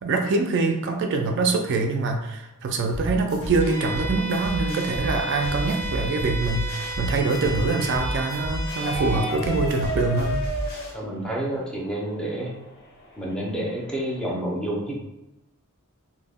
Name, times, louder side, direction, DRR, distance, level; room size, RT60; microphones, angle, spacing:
voice 1, 0.0-10.4, right 3 dB, 55° right, 4 dB, 0.3 m, -24 dB
sound 1, 2.9-10.9, equal, 65° left, 1.1 m, -32 dB
Bowed string instrument, 3.6-9.4, right 2 dB, 90° left, 1.0 m, -34 dB
sound 2, 8.7-14.3, equal, 50° left, 0.6 m, -35 dB
voice 2, 10.9-12.6 13.2-15.0, right 1 dB, 5° left, -3 dB, 0.5 m, -29 dB
2.1 x 2.1 x 3.4 m, 0.97 s
head